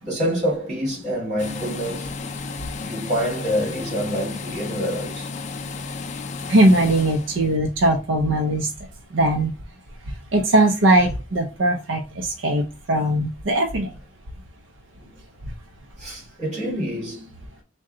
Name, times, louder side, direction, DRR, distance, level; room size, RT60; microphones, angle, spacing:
voice 1, 0.0-2.1 2.8-5.3 15.0-15.1 16.0-17.3, equal, 40° right, 1.9 m, -26 dB
sound 1, 1.4-7.6, left 4 dB, 35° left, 0.3 m, -33 dB
voice 2, 6.5-8.7 9.1-9.5 10.1-13.9, right 1 dB, 75° right, 0.6 m, -20 dB
3.7 x 2.2 x 3.7 m
head